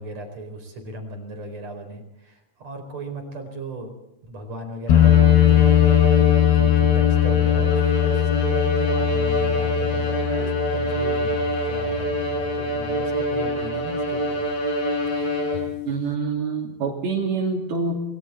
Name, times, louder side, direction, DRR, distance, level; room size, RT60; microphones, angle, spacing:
voice 1, 0.0-3.9 4.3-14.4, right 2 dB, 40° right, 4 dB, 5.4 m, -37 dB
sound 1, 4.9-12.5 15.5-15.6, left 12 dB, 90° left, 3.7 m, -20 dB
Bowed string instrument, 4.9-15.9, left 1 dB, 65° left, 7.8 m, -25 dB
voice 2, 15.9-18.0, right 4 dB, 70° right, -4 dB, 4.8 m, -26 dB
28.5 x 21.0 x 4.3 m, 0.90 s
omnidirectional pair, 4.6 m